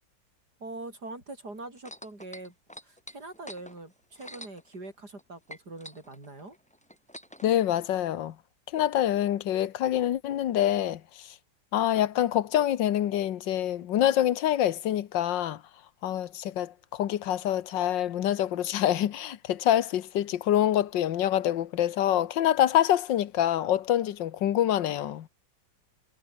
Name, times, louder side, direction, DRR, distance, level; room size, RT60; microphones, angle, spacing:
voice 1, 0.6-2.5 2.8-6.6, right 2 dB, 55° right, 7.9 m, -43 dB
sound 1, 1.8-5.2 5.5-7.5 8.3-8.4, equal, 5° left, 3.7 m, -46 dB
voice 2, 7.4-8.4 8.7-11.3 11.7-15.6 16.0-25.3, left 11 dB, 70° left, 1.7 m, -26 dB
omnidirectional pair, 2.1 m